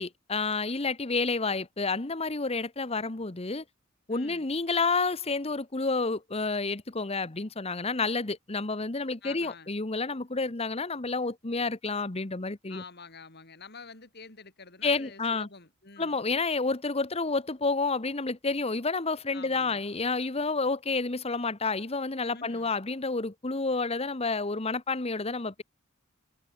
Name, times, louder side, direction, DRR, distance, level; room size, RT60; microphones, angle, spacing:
voice 1, 0.0-3.6 4.1-12.8 14.8-15.5 16.0-25.6, left 3 dB, 30° left, 1.2 m, -30 dB
voice 2, 4.1-4.5 9.2-9.7 12.7-16.2 19.3-19.9 22.3-22.8, left 4 dB, 50° left, 4.5 m, -48 dB
head